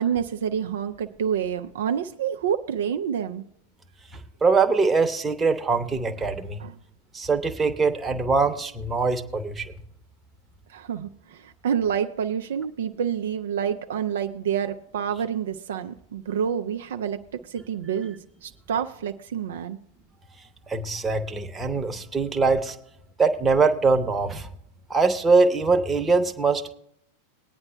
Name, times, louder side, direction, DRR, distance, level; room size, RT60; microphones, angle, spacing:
voice 1, 0.0-3.4 6.6-6.7 10.7-19.8, right 8 dB, 60° right, 8 dB, 0.4 m, -28 dB
voice 2, 4.4-6.6 7.1-9.7 20.7-22.8 23.2-24.5 24.9-26.7, right 4 dB, 15° right, 6 dB, 0.9 m, -22 dB
20.5 x 9.6 x 2.2 m, 0.72 s
figure-of-eight pair, 90°, 0 cm